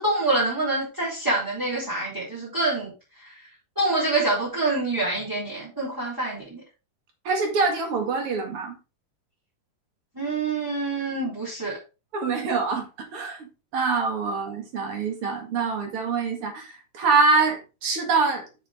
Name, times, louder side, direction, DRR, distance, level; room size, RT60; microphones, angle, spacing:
voice 1, 0.0-2.9 3.2-3.3 3.7-6.6 10.1-11.8, right 2 dB, 5° right, -9 dB, 3.3 m, -26 dB
voice 2, 7.2-8.7 12.1-13.5 13.7-18.4, right 4 dB, 45° right, 3 dB, 2.4 m, -25 dB
7.1 x 6.9 x 3.6 m, 0.30 s
omnidirectional pair, 4.0 m